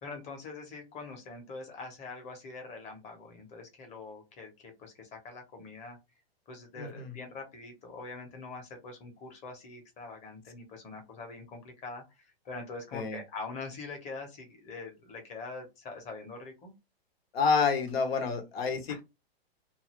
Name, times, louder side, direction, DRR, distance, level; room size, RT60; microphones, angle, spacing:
voice 1, 0.0-6.0 6.5-16.7 18.9-19.0, left 3 dB, 20° left, 1.0 m, -44 dB
voice 2, 6.8-7.1 12.9-13.2 17.3-19.0, left 5 dB, 70° left, 1.0 m, -28 dB
2.7 x 2.4 x 3.0 m
hypercardioid pair, 140°, 31 cm